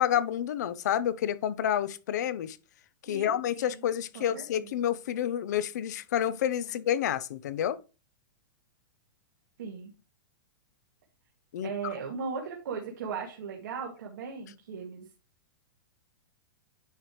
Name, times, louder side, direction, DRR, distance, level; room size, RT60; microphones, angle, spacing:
voice 1, 0.0-2.6 3.0-7.8 11.5-11.7, left 10 dB, 55° left, 0.6 m, -29 dB
voice 2, 3.1-3.9 4.2-4.7 9.6-9.9 11.6-15.1, right 5 dB, 60° right, 1.8 m, -38 dB
10.0 x 3.4 x 4.6 m
supercardioid pair, 175°, 11 cm